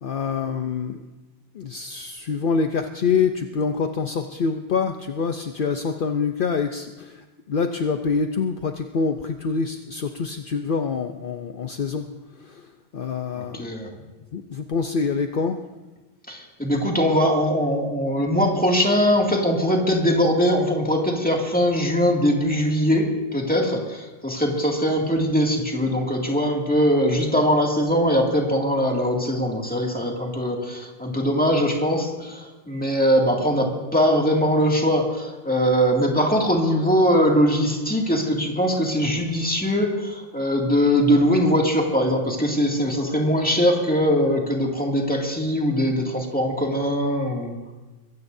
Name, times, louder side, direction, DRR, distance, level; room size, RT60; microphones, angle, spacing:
voice 1, 0.0-1.0 1.5-12.1 12.4-12.7 12.9-13.7 14.3-15.6, left 5 dB, 60° left, 6 dB, 0.8 m, -26 dB
voice 2, 13.3-13.9 16.3-47.5, equal, 10° left, -1 dB, 2.3 m, -21 dB
23.0 x 16.5 x 2.7 m, 1.2 s
omnidirectional pair, 1.0 m